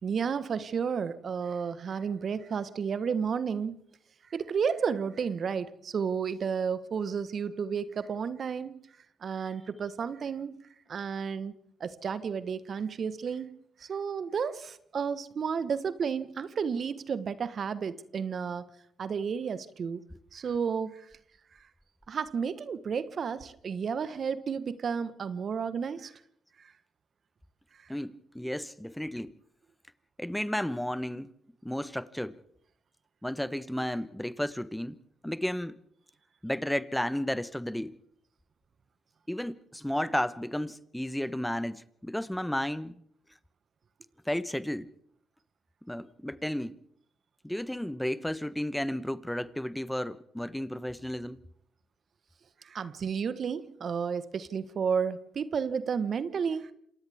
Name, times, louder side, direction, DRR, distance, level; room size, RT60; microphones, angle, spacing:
voice 1, 0.0-3.8 4.3-8.7 9.2-10.6 10.9-11.5 11.8-18.7 19.0-20.0 20.3-21.1 22.1-26.1 27.8-27.9 52.6-56.7, right 6 dB, 55° right, 1.3 m, -32 dB
voice 2, 27.9-29.3 30.2-31.3 31.6-32.4 33.2-35.0 35.2-35.8 36.4-38.0 39.3-43.0 44.2-44.9 45.9-46.8 47.4-51.4, left 1 dB, 5° left, 1.1 m, -33 dB
28.0 x 27.5 x 3.6 m
hypercardioid pair, 45°, 0 cm